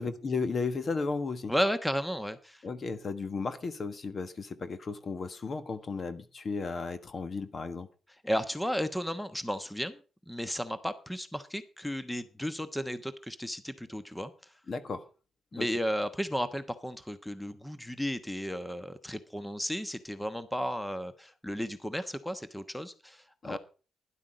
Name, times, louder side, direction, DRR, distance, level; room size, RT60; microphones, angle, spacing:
voice 1, 0.0-1.5 2.6-7.9 14.7-15.1 15.5-15.7 23.4-23.6, left 4 dB, 45° left, 11 dB, 1.4 m, -34 dB
voice 2, 1.5-2.6 8.2-10.0 10.3-14.3 15.5-23.6, equal, 5° left, 12 dB, 1.1 m, -34 dB
12.0 x 11.0 x 5.0 m, 0.36 s
cardioid pair, 90°, 0 cm